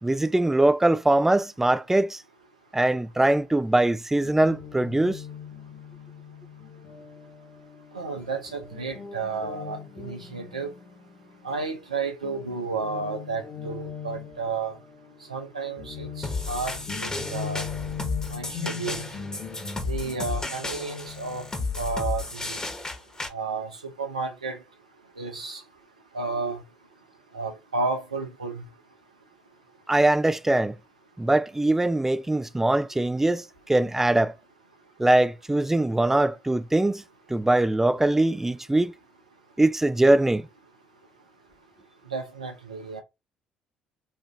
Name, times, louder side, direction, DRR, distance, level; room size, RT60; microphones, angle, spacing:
voice 1, 0.0-2.2 2.7-5.2 29.9-30.8 31.2-34.3 35.0-37.0 37.3-38.9 39.6-40.5, right 1 dB, 10° right, 0.3 m, -22 dB
Guitar, 4.2-11.9 12.2-22.7, left 6 dB, 45° left, 1.2 m, -40 dB
voice 2, 7.9-10.7 11.4-14.7 15.3-17.6 18.3-19.1 19.9-21.4 21.8-22.6 23.3-23.7 24.0-24.6 25.2-25.6 26.1-26.6 27.3-28.6 42.1-43.0, right 4 dB, 90° right, 0.6 m, -32 dB
sound 1, 16.2-23.3, left 3 dB, 20° left, 1.1 m, -33 dB
4.3 x 2.5 x 2.4 m
figure-of-eight pair, 50°, 4 cm